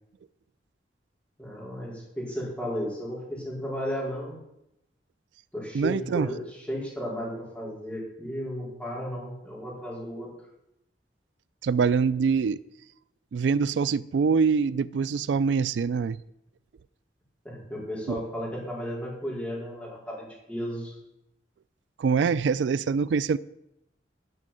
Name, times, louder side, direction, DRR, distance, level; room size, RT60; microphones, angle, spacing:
voice 1, 1.4-4.4 5.5-10.3 17.4-21.0, equal, 5° left, 4.7 m, -34 dB
voice 2, 5.7-6.3 11.6-12.6 13.3-16.2 18.1-18.2 22.0-23.4, right 5 dB, 85° right, 0.4 m, -24 dB
11.0 x 6.3 x 9.0 m
head